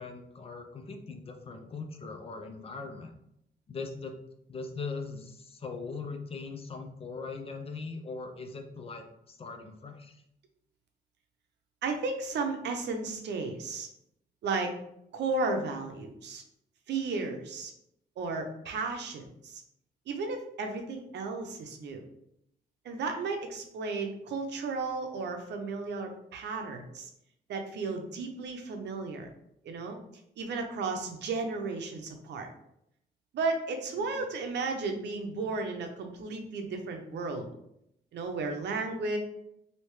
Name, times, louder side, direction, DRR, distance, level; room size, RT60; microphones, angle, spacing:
voice 1, 0.0-3.1 3.7-4.1 4.5-10.2 34.0-34.3, left 4 dB, 35° left, 5 dB, 0.4 m, -40 dB
voice 2, 11.8-13.9 14.4-14.7 15.1-16.4 16.9-17.7 18.2-19.6 20.1-22.0 22.8-27.1 27.5-29.3 29.6-30.0 30.4-32.5 33.3-37.5 38.1-39.2, right 3 dB, 80° right, 4 dB, 0.6 m, -34 dB
3.2 x 2.7 x 3.1 m, 0.77 s
wide cardioid pair, 155°, 18 cm